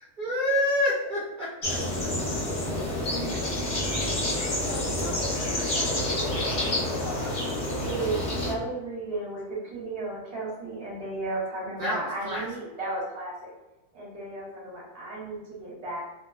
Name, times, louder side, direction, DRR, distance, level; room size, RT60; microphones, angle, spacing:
voice 1, 0.2-2.1 3.1-3.7 11.8-12.4, left 1 dB, 75° right, -7 dB, 0.4 m, -29 dB
sound 1, 1.6-8.5, left 1 dB, 50° left, 0.5 m, -28 dB
voice 2, 4.6-6.1 7.0-7.7 9.1-9.2, left 2 dB, 85° left, -5 dB, 1.1 m, -42 dB
voice 3, 7.8-13.5 13.9-16.1, right 2 dB, 50° right, -5 dB, 0.8 m, -34 dB
2.5 x 2.2 x 2.3 m, 1.1 s
omnidirectional pair, 1.5 m